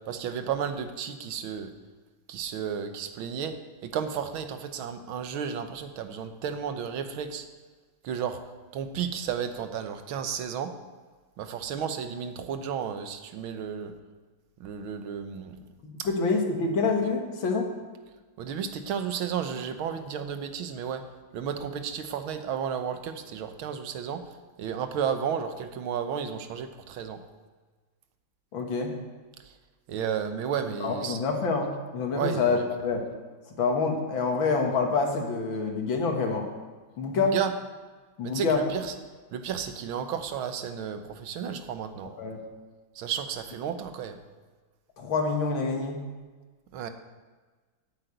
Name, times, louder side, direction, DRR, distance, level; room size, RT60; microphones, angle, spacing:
voice 1, 0.1-1.7 2.3-3.5 3.8-7.5 8.0-8.4 8.7-10.7 11.4-13.9 14.6-15.6 18.4-21.0 21.3-24.2 24.6-27.2 29.5-29.6 29.9-31.2 32.1-32.7 37.1-37.5 38.2-38.9 39.3-42.1 43.0-44.2 46.7-46.9, right 7 dB, 85° right, 8 dB, 1.8 m, -32 dB
voice 2, 15.8-17.7 28.5-28.9 30.8-33.0 33.5-36.5 37.0-37.4 38.2-38.6 42.2-42.4 45.0-46.0, left 4 dB, 75° left, 2 dB, 2.3 m, -27 dB
9.1 x 8.5 x 7.9 m, 1.3 s
omnidirectional pair, 2.2 m